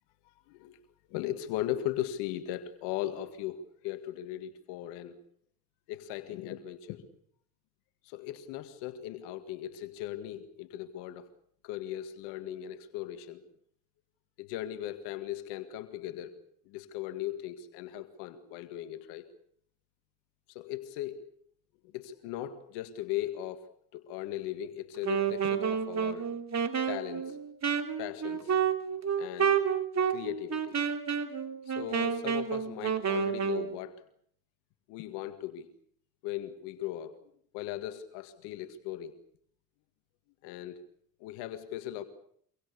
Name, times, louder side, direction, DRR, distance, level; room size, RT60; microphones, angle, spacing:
voice 1, 0.2-0.8 1.1-5.2 5.9-7.1 8.0-11.2 11.6-13.4 14.4-16.4 16.7-19.3 20.5-21.3 21.8-23.7 23.9-26.3 26.9-27.4 28.0-28.7 29.2-29.5 30.1-30.8 31.7-34.0 34.9-35.7 36.2-37.2 37.5-39.1 40.4-40.8 41.2-42.0, left 12 dB, 85° left, 10 dB, 2.0 m, -38 dB
Wind instrument woodwind instrument, 24.9-33.7, right 7 dB, 40° right, 3.1 m, -30 dB
25.5 x 24.0 x 6.9 m, 0.64 s
supercardioid pair, 70°, 40 cm